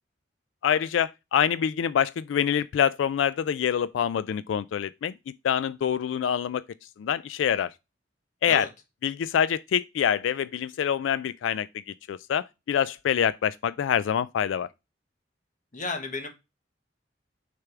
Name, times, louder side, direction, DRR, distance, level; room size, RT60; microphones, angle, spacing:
voice 1, 0.6-5.1 5.4-6.6 7.0-7.7 8.4-8.7 9.0-11.7 12.1-14.7, left 8 dB, 85° left, 0.3 m, -25 dB
voice 2, 15.7-16.3, left 3 dB, 45° left, 1.3 m, -32 dB
6.5 x 3.4 x 5.8 m
head